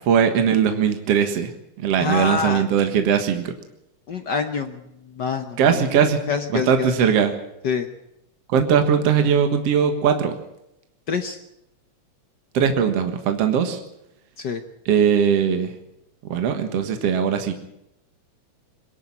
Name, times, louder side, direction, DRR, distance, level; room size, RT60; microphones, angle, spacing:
voice 1, 0.1-3.5 5.6-6.2 6.5-7.3 8.5-10.4 12.5-13.8 14.9-15.7 16.2-17.5, right 7 dB, 60° right, 7 dB, 2.5 m, -20 dB
voice 2, 2.0-2.6 4.1-4.8 5.1-5.8 6.3-6.9 7.6-7.9 11.1-11.4 14.4-14.6, left 5 dB, 65° left, 7 dB, 1.0 m, -26 dB
22.0 x 12.0 x 9.8 m, 0.83 s
omnidirectional pair, 3.3 m